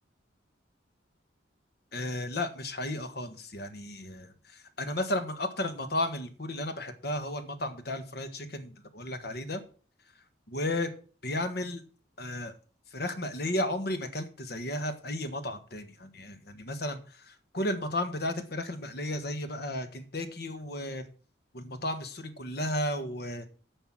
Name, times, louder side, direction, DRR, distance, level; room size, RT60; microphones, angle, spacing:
voice 1, 1.9-9.6 10.5-10.9 11.2-11.8 12.2-12.5 12.9-21.0 21.5-23.5, left 1 dB, 55° left, 8 dB, 1.4 m, -34 dB
10.5 x 5.5 x 7.5 m, 0.40 s
head